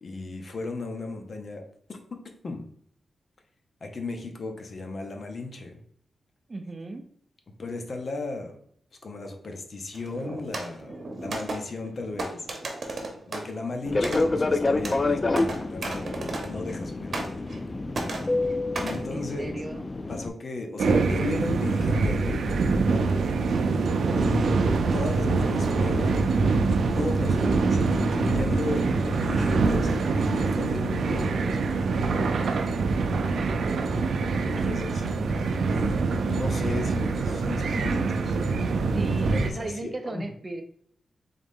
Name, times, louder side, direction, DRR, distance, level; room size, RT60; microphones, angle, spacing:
voice 1, 0.0-1.6 1.9-2.7 3.8-5.8 7.6-8.6 9.0-12.4 13.3-17.5 18.8-19.6 20.1-23.1 24.1-24.5 24.9-26.3 26.7-31.8 34.4-35.4 35.7-35.9 36.3-38.6 39.1-40.2, left 3 dB, 50° left, 4 dB, 0.7 m, -35 dB
voice 2, 6.5-7.0 19.1-19.9 34.6-35.0 38.9-40.6, right 2 dB, 30° right, 6 dB, 0.5 m, -36 dB
sound 1, 9.9-16.8 17.1-17.7 17.9-19.0, right 2 dB, 55° right, 0.9 m, -36 dB
Fixed-wing aircraft airplane, 13.9-20.3, left 2 dB, 30° left, 0.3 m, -28 dB
sound 2, 20.8-39.5, right 4 dB, 80° right, 0.4 m, -24 dB
3.9 x 3.6 x 3.6 m, 0.65 s
wide cardioid pair, 105°, 0 cm